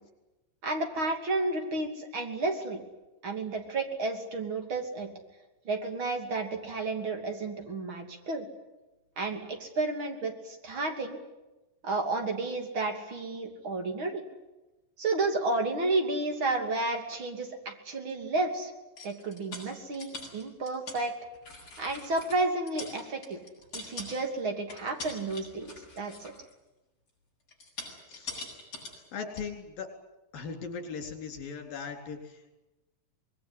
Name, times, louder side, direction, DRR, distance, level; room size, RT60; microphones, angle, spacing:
voice 1, 0.6-2.8 3.2-5.1 5.6-8.5 9.2-11.2 11.8-14.2 15.0-18.7 19.0-21.1 21.8-23.4 23.7-26.3, right 2 dB, 35° right, 4 dB, 3.4 m, -31 dB
sound 1, 19.0-21.0 21.3-22.4 22.7-24.4 24.7-26.5 27.5-29.0 29.4-29.5, left 3 dB, 40° left, 8.9 m, -43 dB
voice 2, 29.1-29.9 30.3-32.5, left 5 dB, 85° left, 4 dB, 5.5 m, -39 dB
25.5 x 21.0 x 9.8 m, 1.0 s
omnidirectional pair, 3.9 m